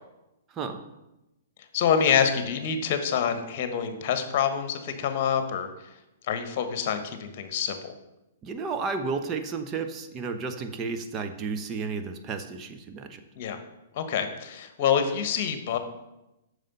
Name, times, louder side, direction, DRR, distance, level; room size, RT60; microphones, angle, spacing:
voice 1, 1.7-5.7 6.3-7.9 13.4-13.6 13.9-15.8, left 7 dB, 45° left, 8 dB, 1.3 m, -26 dB
voice 2, 8.4-13.2, right 4 dB, 25° right, 6 dB, 0.9 m, -32 dB
9.0 x 6.6 x 5.5 m, 0.95 s
figure-of-eight pair, 110°, 0 cm